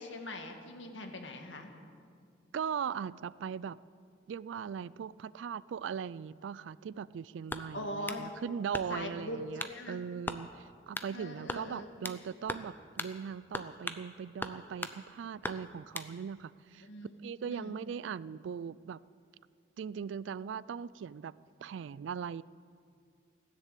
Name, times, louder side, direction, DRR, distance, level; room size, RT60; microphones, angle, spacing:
voice 1, 0.0-1.7 7.7-8.3 8.9-9.4 9.6-10.0 11.1-11.9 16.8-17.7, left 1 dB, 85° left, 4 dB, 1.8 m, -42 dB
voice 2, 2.5-3.8 4.3-16.9 17.2-19.0 19.8-21.3 21.6-22.4, right 7 dB, 85° right, 20 dB, 0.3 m, -39 dB
sound 1, 7.5-8.2 8.7-9.1 9.6-9.8 10.3-10.4 10.9-11.1 11.5-12.2 12.5-12.7 13.0-13.1 13.5-14.1 14.4-15.0 15.4-16.1, left 2 dB, 10° left, 0.5 m, -39 dB
16.0 x 10.5 x 8.3 m, 2.2 s
head